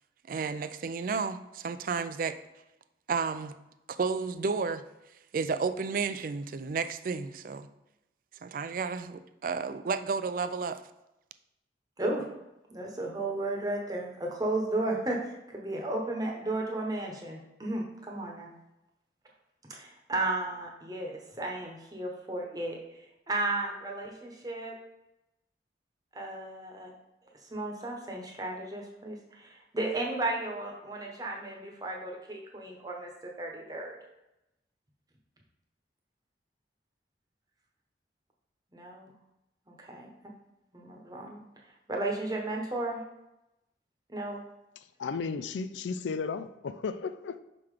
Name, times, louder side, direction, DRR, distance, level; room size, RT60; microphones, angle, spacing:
voice 1, 0.3-2.4 3.1-3.5 3.9-4.8 5.3-7.7 8.4-10.8, right 5 dB, 50° right, 0.3 m, -32 dB
voice 2, 12.7-15.2 15.5-18.5 19.7-22.8 23.3-24.7 26.1-26.9 27.5-34.0 38.7-39.1 39.7-40.1 40.7-41.4 41.9-43.0 44.1-44.4, right 2 dB, 20° right, 1.0 m, -34 dB
voice 3, 45.0-47.4, left 5 dB, 90° left, 0.4 m, -34 dB
5.9 x 3.8 x 4.8 m
head